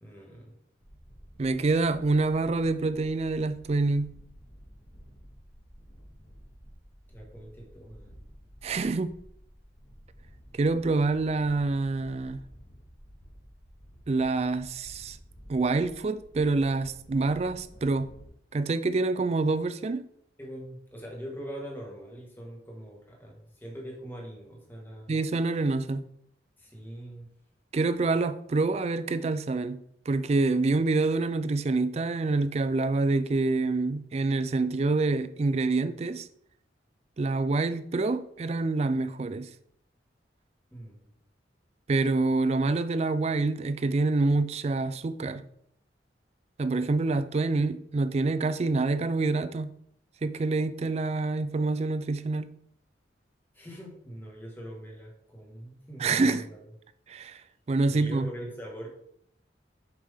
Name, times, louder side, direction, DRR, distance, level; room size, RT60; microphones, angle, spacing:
voice 1, 0.0-0.5 7.1-8.2 20.4-25.2 26.6-27.3 40.7-41.1 53.5-56.7 57.9-58.9, equal, 10° left, 1.6 m, -42 dB
sound 1, 0.8-18.3, equal, 80° left, 2.4 m, -52 dB
voice 2, 1.4-4.1 8.6-9.2 10.5-12.4 14.1-15.2 15.5-18.1 18.5-20.1 25.1-26.0 27.7-29.8 30.1-36.3 37.2-39.5 41.9-45.4 46.6-49.7 50.2-52.5 56.0-56.4 57.1-57.4 57.7-58.3, right 3 dB, 35° right, 0.3 m, -26 dB
7.3 x 5.2 x 3.6 m
head